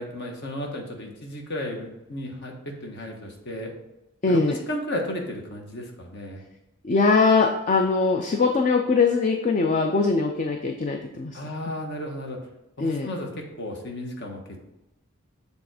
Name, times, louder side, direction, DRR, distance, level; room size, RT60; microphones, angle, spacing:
voice 1, 0.0-3.7 4.3-6.4 11.3-12.4 12.8-14.6, left 1 dB, 55° left, 2 dB, 1.3 m, -34 dB
voice 2, 4.2-4.6 6.8-11.4 12.8-13.1, left 4 dB, 40° left, 3 dB, 0.5 m, -21 dB
7.2 x 3.5 x 4.9 m, 0.92 s
head